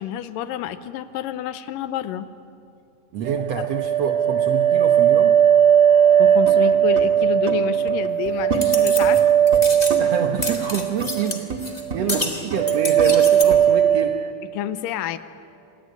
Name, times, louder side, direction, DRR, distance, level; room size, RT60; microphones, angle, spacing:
voice 1, 0.0-2.3 6.2-9.2 14.5-15.2, left 10 dB, 80° left, 12 dB, 2.4 m, -29 dB
voice 2, 3.1-5.3 9.8-11.4 11.9-14.2, right 6 dB, 65° right, 5 dB, 1.7 m, -27 dB
sound 1, 3.3-11.4 11.7-12.3 12.6-14.3, right 9 dB, 85° right, 2.5 m, -18 dB
sound 2, 6.0-7.6 7.9-9.6 9.9-11.6 11.9-13.6, right 4 dB, 30° right, 1.6 m, -31 dB
sound 3, 8.5-9.2 9.5-10.0 10.4-11.8 12.1-13.4, left 2 dB, 45° left, 0.5 m, -29 dB
27.0 x 18.5 x 9.4 m, 2.5 s
omnidirectional pair, 4.0 m